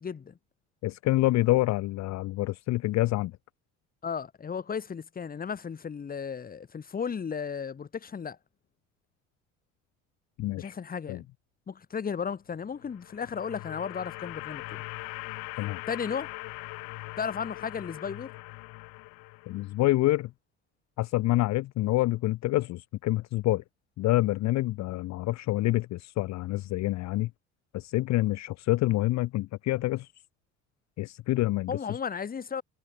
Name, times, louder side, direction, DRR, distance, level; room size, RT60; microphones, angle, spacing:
voice 1, 0.0-0.4 4.0-8.4 10.6-11.3 11.7-15.1 15.9-16.3 17.2-18.3 31.7-32.6, left 6 dB, 25° left, 1.1 m, -34 dB
voice 2, 0.8-3.3 10.4-10.7 11.1-11.2 15.6-15.8 19.5-20.3 21.0-23.6 24.0-27.3 27.7-30.1 31.0-31.8, left 17 dB, 50° left, 0.6 m, -27 dB
sound 1, 12.7-19.9, left 27 dB, 65° left, 1.3 m, -41 dB
hypercardioid pair, 65°, 36 cm